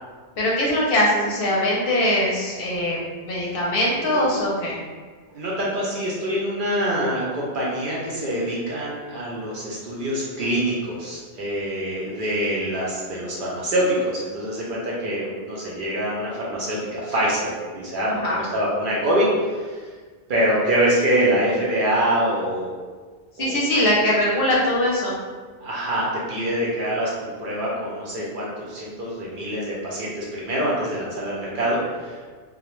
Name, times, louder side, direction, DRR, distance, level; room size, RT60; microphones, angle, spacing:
voice 1, 0.4-3.0 3.3-4.8 18.1-18.4 23.4-25.2, left 1 dB, 65° left, -4 dB, 0.7 m, -21 dB
voice 2, 5.3-19.9 20.3-22.7 23.4-23.9 25.6-32.2, right 1 dB, 60° right, -5 dB, 0.6 m, -25 dB
2.3 x 2.0 x 3.0 m, 1.5 s
omnidirectional pair, 1.1 m